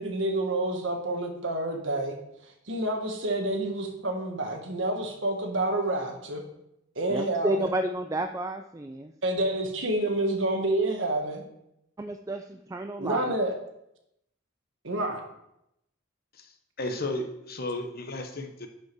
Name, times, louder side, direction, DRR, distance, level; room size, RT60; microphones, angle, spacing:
voice 1, 0.0-2.2 2.4-6.4 6.9-7.7 9.2-11.4 13.0-13.5 14.8-15.2, right 1 dB, 70° right, 3 dB, 1.6 m, -28 dB
voice 2, 7.1-9.1 12.0-13.3, right 1 dB, 15° right, 6 dB, 0.3 m, -31 dB
voice 3, 16.3-18.7, left 2 dB, 50° left, 5 dB, 1.0 m, -34 dB
10.5 x 5.2 x 4.8 m, 0.81 s
head